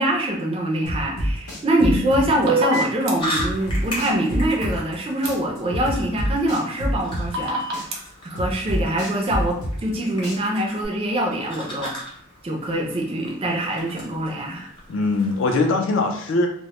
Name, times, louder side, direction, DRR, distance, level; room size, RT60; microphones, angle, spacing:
voice 1, 0.0-7.9 8.2-11.9 12.4-14.7, right 1 dB, 25° right, 0 dB, 0.3 m, -24 dB
sound 1, 0.9-2.5 2.7-5.0 5.2-7.5 7.7-10.0 10.2-10.9, equal, 85° left, 0.7 m, -27 dB
voice 2, 1.8-2.3 14.9-16.5, left 3 dB, 60° left, 4 dB, 0.4 m, -22 dB
sound 2, 2.5-3.1 5.3-5.4 7.3-8.0, right 3 dB, 80° right, 0.5 m, -23 dB
sound 3, 3.2-15.4, left 1 dB, 25° left, 0.7 m, -37 dB
2.1 x 2.0 x 2.9 m, 0.63 s
head